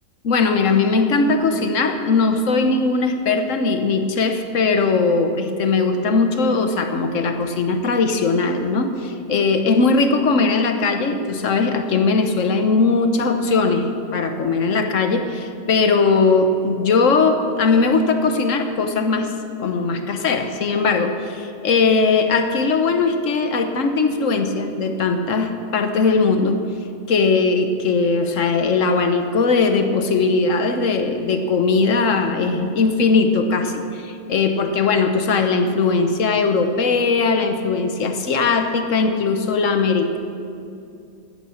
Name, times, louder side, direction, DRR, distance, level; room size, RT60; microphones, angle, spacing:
voice 1, 0.2-19.3 19.6-26.7 27.1-40.2, left 4 dB, 70° left, 7 dB, 1.4 m, -19 dB
14.5 x 10.5 x 6.4 m, 2.6 s
omnidirectional pair, 1.4 m